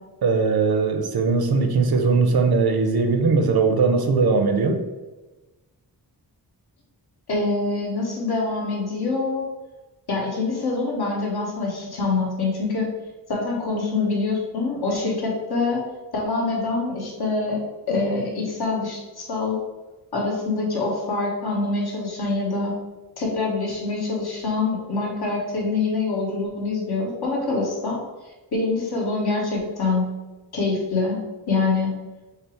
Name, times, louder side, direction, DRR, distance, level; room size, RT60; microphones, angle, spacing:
voice 1, 0.2-4.8, right 4 dB, 65° right, 6 dB, 0.6 m, -20 dB
voice 2, 7.3-9.4 10.1-12.9 13.3-15.8 16.1-17.6 17.9-19.6 20.1-22.8 23.2-28.0 28.5-30.1 30.5-31.2 31.5-31.9, left 3 dB, 70° left, -3 dB, 1.4 m, -25 dB
5.5 x 2.0 x 4.4 m, 1.1 s
wide cardioid pair, 165°, 40 cm